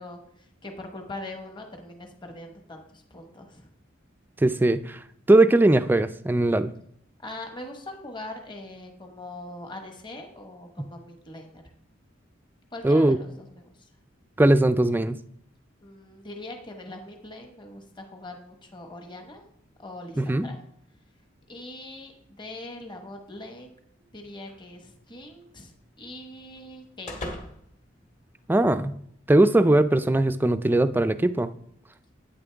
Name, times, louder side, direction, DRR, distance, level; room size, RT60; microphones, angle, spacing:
voice 1, 0.0-3.7 7.2-11.6 12.7-13.7 15.8-19.4 19.8-20.6 21.5-22.1 22.4-23.8 24.1-27.4, left 1 dB, 25° left, 3 dB, 1.2 m, -42 dB
voice 2, 4.4-5.0 5.3-6.7 10.8-10.9 12.8-13.2 14.4-15.2 20.2-20.5 28.5-29.0 29.3-31.5, right 2 dB, 10° right, 12 dB, 0.3 m, -20 dB
sound 1, 24.5-28.9, left 1 dB, 40° left, 1.7 m, -44 dB
10.5 x 9.1 x 3.5 m, 0.70 s
head